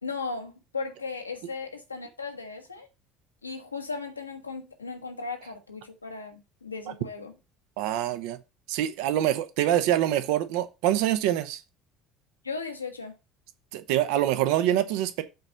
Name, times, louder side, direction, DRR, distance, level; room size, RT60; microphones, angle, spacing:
voice 1, 0.0-2.9 3.4-7.3 12.4-13.2, left 4 dB, 85° left, 1.1 m, -36 dB
voice 2, 7.8-8.4 8.7-11.6 13.7-15.2, right 12 dB, 60° right, 0.9 m, -25 dB
7.9 x 4.3 x 5.1 m
figure-of-eight pair, 60°, 0 cm